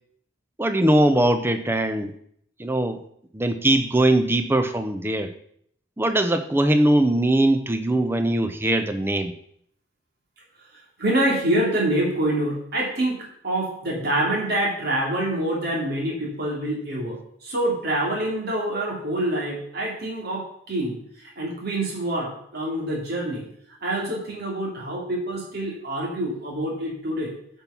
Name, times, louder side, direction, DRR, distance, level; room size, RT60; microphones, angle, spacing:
voice 1, 0.6-2.2 2.6-3.0 3.3-5.3 6.0-9.3, right 1 dB, 10° right, 8 dB, 0.6 m, -21 dB
voice 2, 11.0-13.2 13.4-17.2 17.4-21.0 21.4-23.4 23.8-27.3, right 1 dB, 55° right, -2 dB, 2.8 m, -26 dB
8.9 x 5.5 x 5.7 m, 0.68 s
head